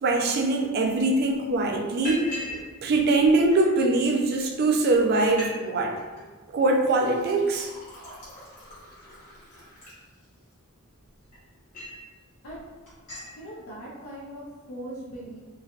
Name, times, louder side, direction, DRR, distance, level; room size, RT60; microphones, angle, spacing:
voice 1, 0.0-2.3 2.8-5.9 6.5-7.7, right 2 dB, 45° right, 2 dB, 0.3 m, -22 dB
Liquid, 0.9-1.0 1.3-1.6 2.0-2.6 2.9-3.8 4.5-4.6 4.9-5.0 5.2-5.5 5.8-6.2 6.7-10.5 11.0-12.0 12.4-12.6 12.9-13.3, equal, 35° left, 1.0 m, -41 dB
voice 2, 13.4-15.4, right 1 dB, 70° left, -6 dB, 0.5 m, -40 dB
3.2 x 2.2 x 2.3 m, 1.4 s
head